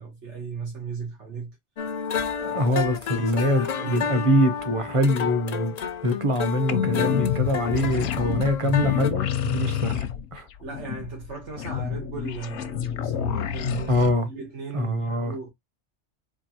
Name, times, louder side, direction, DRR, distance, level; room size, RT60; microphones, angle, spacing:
voice 1, 0.0-1.6 2.5-2.6 3.1-4.1 10.6-15.5, right 5 dB, 90° right, 1.5 m, -36 dB
sound 1, 1.8-9.1, left 7 dB, 55° left, 0.4 m, -30 dB
voice 2, 2.4-5.7 6.0-10.1 10.3-10.5 13.9-14.3 14.7-15.3, equal, 30° right, 0.8 m, -24 dB
sound 2, 6.7-14.1, left 9 dB, 85° left, 0.9 m, -28 dB
4.6 x 2.6 x 2.8 m
omnidirectional pair, 1.2 m